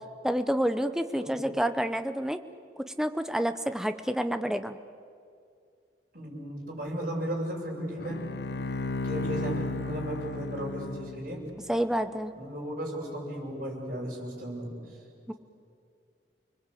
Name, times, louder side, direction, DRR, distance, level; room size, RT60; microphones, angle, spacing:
voice 1, 0.2-2.4 3.0-4.8 11.7-12.3 15.3-15.4, equal, 5° right, 9 dB, 0.8 m, -28 dB
voice 2, 6.1-8.3 9.0-11.4 12.4-14.7, right 1 dB, 50° right, -4 dB, 7.4 m, -35 dB
Bowed string instrument, 8.0-11.5, left 2 dB, 70° left, 0.7 m, -34 dB
30.0 x 21.0 x 8.5 m, 2.4 s
head